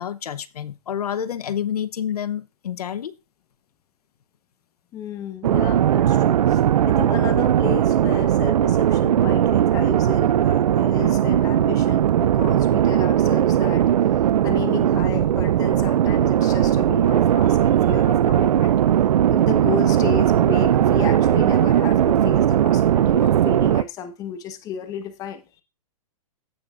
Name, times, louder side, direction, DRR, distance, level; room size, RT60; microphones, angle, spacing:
voice 1, 0.0-3.1, left 9 dB, 90° left, 15 dB, 0.9 m, -28 dB
voice 2, 4.9-13.9 14.1-18.8 19.3-25.6, left 8 dB, 20° left, 9 dB, 1.2 m, -33 dB
sound 1, 5.4-23.8, right 10 dB, 85° right, 0.5 m, -18 dB
sound 2, 18.7-22.3, right 14 dB, 35° right, 1.0 m, -43 dB
16.0 x 6.1 x 2.5 m, 0.28 s
hypercardioid pair, 160°, 19 cm